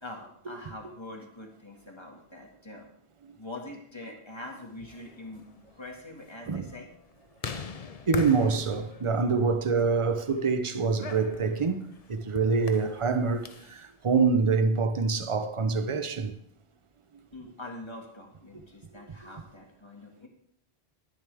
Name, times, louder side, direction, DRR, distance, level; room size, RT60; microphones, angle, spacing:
voice 1, 0.0-2.9 3.4-5.4 5.8-6.9 17.3-20.3, left 2 dB, 25° left, 2.1 m, -44 dB
sound 1, 4.7-13.8, left 5 dB, 40° left, 0.7 m, -42 dB
voice 2, 8.1-16.3, right 4 dB, 35° right, 0.8 m, -26 dB
12.0 x 10.0 x 3.5 m
omnidirectional pair, 1.1 m